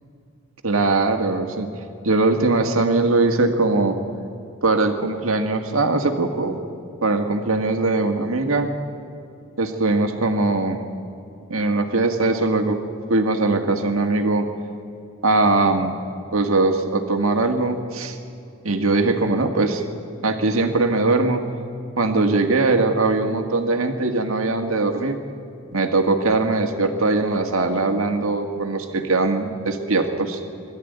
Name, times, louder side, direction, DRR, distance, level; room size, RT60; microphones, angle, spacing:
voice 1, 0.6-1.7 2.0-4.0 4.6-6.6 7.0-8.7 9.6-10.8 11.5-12.8 13.1-14.5 15.2-15.9 16.3-18.2 18.6-19.8 20.2-21.4 22.0-25.2 25.7-30.4, right 3 dB, 85° right, 5 dB, 1.9 m, -21 dB
21.0 x 13.5 x 9.4 m, 2.6 s
head